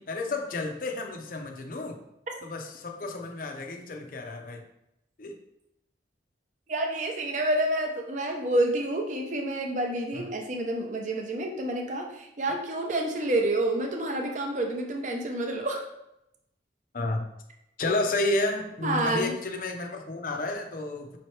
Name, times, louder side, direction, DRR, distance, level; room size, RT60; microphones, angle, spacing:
voice 1, 0.0-2.0 2.4-4.6 5.2-5.3 10.1-10.3 16.9-17.2 17.8-21.2, left 2 dB, 50° left, 4 dB, 0.5 m, -31 dB
voice 2, 6.7-15.9 18.8-19.3, right 1 dB, 40° right, 2 dB, 0.6 m, -28 dB
5.3 x 2.9 x 3.2 m, 0.85 s
head